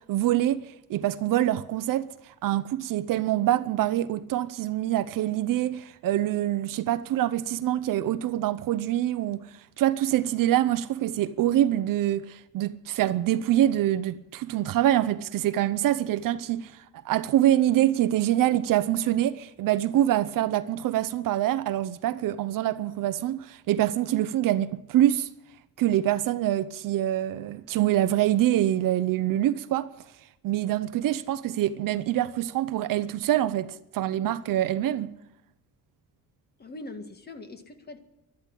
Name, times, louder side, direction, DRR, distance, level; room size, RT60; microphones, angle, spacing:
voice 1, 0.1-0.6 0.9-2.1 2.4-9.4 9.8-16.7 17.0-25.3 25.8-29.9 30.4-35.1, right 13 dB, 70° right, 0.8 m, -25 dB
voice 2, 36.6-38.0, left 2 dB, 30° left, 1.8 m, -41 dB
12.0 x 12.0 x 9.8 m
cardioid pair, 115°, 34 cm